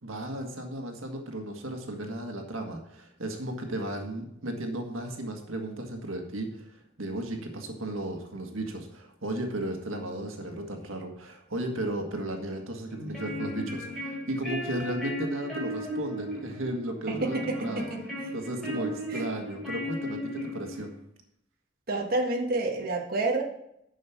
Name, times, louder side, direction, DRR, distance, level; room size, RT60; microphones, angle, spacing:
voice 1, 0.0-17.9 18.3-20.9, right 1 dB, 90° right, 4 dB, 1.7 m, -35 dB
sound 1, 12.9-20.9, left 1 dB, ahead, 4.5 m, -36 dB
voice 2, 17.1-18.3 19.1-19.2 21.9-23.4, right 2 dB, 50° right, 1 dB, 1.5 m, -29 dB
10.5 x 6.5 x 5.9 m, 0.78 s
head